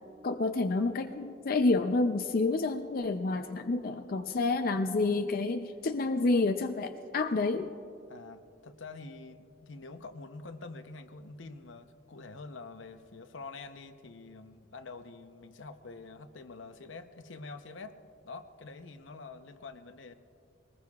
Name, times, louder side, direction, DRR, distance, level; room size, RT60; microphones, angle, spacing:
voice 1, 0.2-7.7, left 3 dB, 50° left, 7 dB, 0.5 m, -29 dB
voice 2, 8.1-18.0 18.2-20.1, left 3 dB, 80° left, 8 dB, 0.8 m, -46 dB
22.5 x 19.5 x 2.4 m, 2.4 s
head